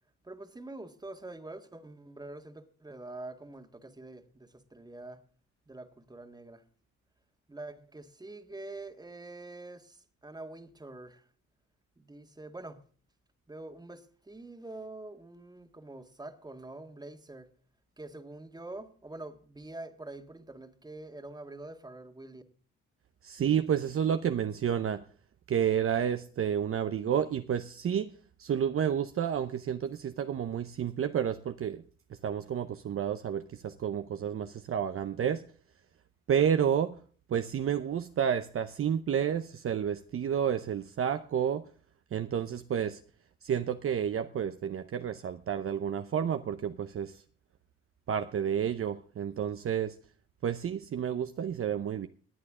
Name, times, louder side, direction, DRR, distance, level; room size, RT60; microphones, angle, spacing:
voice 1, 0.2-5.2 5.7-6.6 7.5-11.3 12.0-12.8 13.5-17.5 18.0-22.4, right 2 dB, 15° right, 1.7 m, -45 dB
voice 2, 23.2-25.0 25.5-28.1 28.4-31.8 32.2-35.4 36.3-37.0 37.3-41.7 42.1-43.0 43.4-47.2 48.1-50.0 50.4-52.1, right 8 dB, 45° right, 0.7 m, -30 dB
18.5 x 9.3 x 3.7 m
cardioid pair, 90°, 30 cm